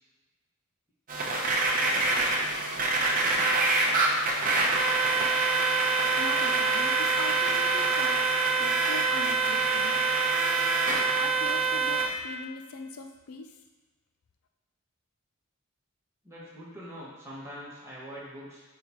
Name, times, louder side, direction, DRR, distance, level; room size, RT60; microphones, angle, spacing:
sound 1, 1.1-12.1, right 3 dB, 40° right, 0.8 m, -25 dB
voice 1, 6.1-10.0 11.2-13.5, left 4 dB, 85° left, 5 dB, 0.6 m, -40 dB
voice 2, 16.2-18.6, equal, 15° right, -8 dB, 1.7 m, -43 dB
8.7 x 3.6 x 3.0 m, 1.2 s
head